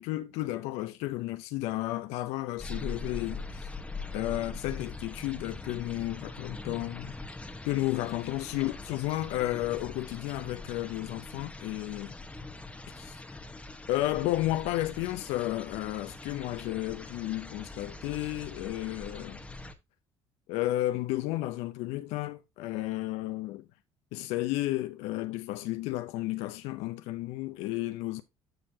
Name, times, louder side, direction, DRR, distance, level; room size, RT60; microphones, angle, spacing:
voice 1, 0.0-3.7 4.1-7.1 7.6-12.1 13.0-13.2 13.9-19.4 20.5-23.7 24.1-28.2, left 16 dB, 85° left, 0.6 m, -32 dB
sound 1, 2.6-19.7, left 3 dB, 10° left, 1.1 m, -42 dB
12.5 x 4.6 x 2.8 m
cardioid pair, 100°, 11 cm